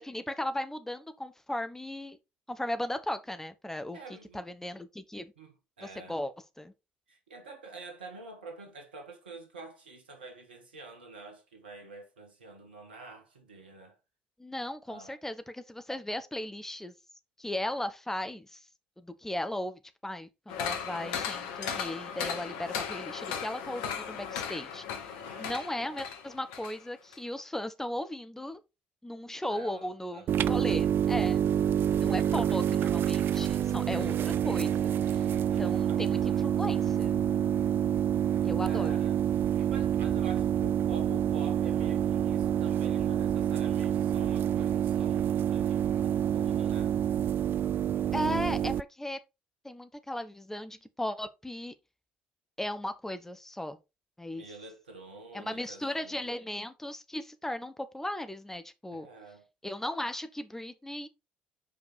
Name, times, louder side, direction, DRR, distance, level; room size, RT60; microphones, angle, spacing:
voice 1, 0.0-2.2 2.5-4.0 4.3-5.3 5.8-6.7 14.4-16.9 17.4-18.6 19.0-28.6 29.0-31.4 32.0-35.2 35.6-37.2 38.4-39.0 48.1-49.2 49.6-51.7 52.6-53.8 54.2-54.4 55.3-59.1 59.6-61.1, left 1 dB, 10° left, 1.0 m, -36 dB
voice 2, 3.9-4.4 5.4-6.2 7.1-14.0 14.9-15.2 25.0-25.5 29.5-30.5 32.3-32.7 35.3-36.5 38.7-47.0 54.3-56.3 58.9-59.5, right 3 dB, 80° right, 1.7 m, -48 dB
sound 1, 20.5-26.8 27.1-27.2, left 7 dB, 65° left, 1.1 m, -37 dB
sound 2, 30.3-48.8, right 10 dB, 45° right, 0.3 m, -27 dB
5.4 x 5.2 x 4.0 m
figure-of-eight pair, 55°, 5 cm